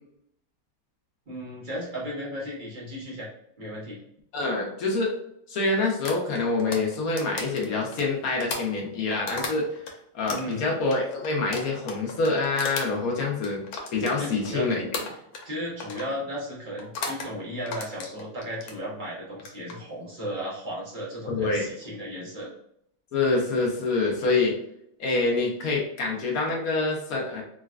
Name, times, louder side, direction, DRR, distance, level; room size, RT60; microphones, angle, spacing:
voice 1, 1.3-3.3 3.6-4.0 10.3-10.6 14.2-14.7 15.0-15.1 15.4-22.5, equal, 45° right, -6 dB, 0.6 m, -35 dB
voice 2, 4.3-5.1 5.5-9.7 10.1-13.6 13.9-14.9 21.3-21.7 23.1-24.5 25.0-27.4, left 3 dB, 65° left, -1 dB, 1.0 m, -26 dB
sound 1, 6.1-9.9 10.3-14.6 14.9-15.5 15.8-16.1 16.8-17.3 17.7-18.8 19.3-19.7, left 4 dB, 85° left, 1.4 m, -35 dB
3.9 x 2.2 x 2.3 m, 0.74 s
omnidirectional pair, 2.1 m